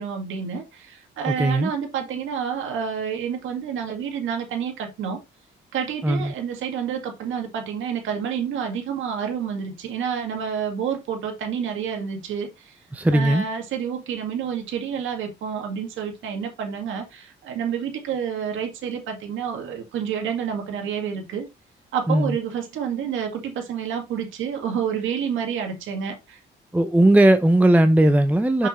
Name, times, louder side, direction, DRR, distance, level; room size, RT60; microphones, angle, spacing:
voice 1, 0.0-5.2 5.7-12.8 13.1-21.5 21.9-26.4 28.6-28.7, right 7 dB, 80° right, 1.9 m, -29 dB
voice 2, 1.3-1.7 6.0-6.3 12.9-13.4 22.1-22.4 26.7-28.7, right 1 dB, 10° right, 0.6 m, -18 dB
6.4 x 5.3 x 3.1 m
cardioid pair, 90°, 20 cm